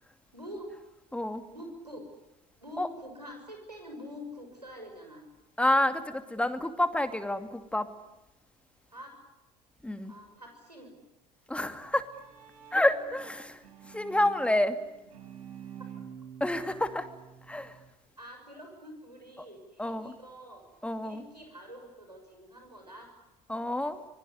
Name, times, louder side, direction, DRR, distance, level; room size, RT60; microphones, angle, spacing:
voice 1, 0.3-0.7 1.5-2.0 2.6-5.2 8.9-9.2 10.0-11.0 13.1-13.2 18.2-20.6 21.0-23.1, equal, 90° right, 3 dB, 6.4 m, -46 dB
voice 2, 5.6-7.9 9.8-10.1 11.5-12.0 12.7-13.6 13.9-14.8 16.4-17.1 17.5-17.7 19.8-20.1 20.8-21.2 23.5-24.0, left 1 dB, 5° left, 9 dB, 2.5 m, -28 dB
Bowed string instrument, 11.8-17.9, right 8 dB, 70° right, 5.3 m, -49 dB
25.5 x 23.0 x 9.9 m, 0.99 s
figure-of-eight pair, 65°, 20 cm